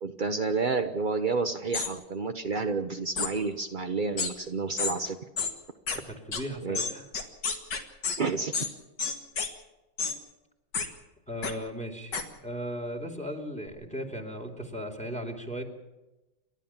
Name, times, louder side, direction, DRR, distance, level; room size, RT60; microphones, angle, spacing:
voice 1, 0.0-5.2 6.6-6.8 8.2-8.7, right 4 dB, 60° right, 6 dB, 0.5 m, -30 dB
sound 1, 1.7-1.9 3.2-3.3 4.2-4.3 4.8-4.9 5.4-5.5 5.9-6.0 6.3-6.4 6.7-8.2 8.5-8.7 9.0-9.5 10.0-10.2 10.7-10.9 11.4-11.5 12.1-12.2, left 5 dB, 55° left, 2.6 m, -30 dB
voice 2, 5.9-7.1 11.3-15.6, equal, 5° left, 3 dB, 2.7 m, -37 dB
29.5 x 12.5 x 7.3 m, 1.0 s
omnidirectional pair, 2.3 m